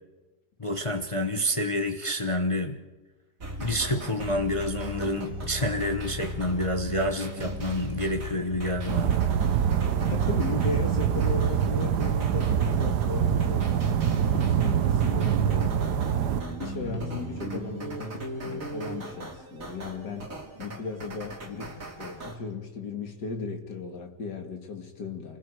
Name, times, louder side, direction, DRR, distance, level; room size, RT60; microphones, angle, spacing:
voice 1, 0.6-2.8 3.6-9.2, left 1 dB, 20° left, 4 dB, 1.0 m, -28 dB
sound 1, 3.4-22.4, equal, 50° right, 3.0 m, -37 dB
sound 2, 5.0-18.8, left 2 dB, 35° left, 2.6 m, -46 dB
sound 3, 8.9-16.4, right 9 dB, 75° right, 1.4 m, -25 dB
voice 2, 10.1-16.3 16.6-20.3 20.6-25.4, left 4 dB, 80° left, 4 dB, 2.7 m, -36 dB
28.0 x 20.5 x 4.8 m, 1.2 s
omnidirectional pair, 1.8 m